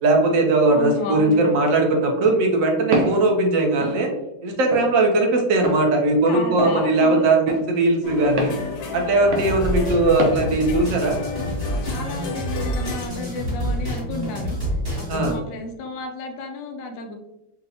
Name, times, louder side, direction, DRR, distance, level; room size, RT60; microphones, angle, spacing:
voice 1, 0.0-4.1 4.4-8.5 8.9-11.2 15.1-15.4, right 2 dB, 65° right, 2 dB, 0.8 m, -19 dB
voice 2, 0.7-1.4 6.3-7.3 11.8-14.6 15.0-17.1, left 2 dB, 65° left, 3 dB, 0.8 m, -32 dB
Walk footsteps, 2.9-3.2 3.8-4.0 4.7-4.9 5.6-5.8 6.6-6.8 7.5-7.6 8.4-8.6 9.3-9.5 10.2-10.4, right 1 dB, 90° right, 1.5 m, -24 dB
sound 1, 8.0-13.1, left 4 dB, 80° left, 1.4 m, -31 dB
sound 2, 9.4-15.4, equal, 25° right, 0.5 m, -28 dB
5.1 x 2.0 x 2.7 m, 0.93 s
omnidirectional pair, 2.1 m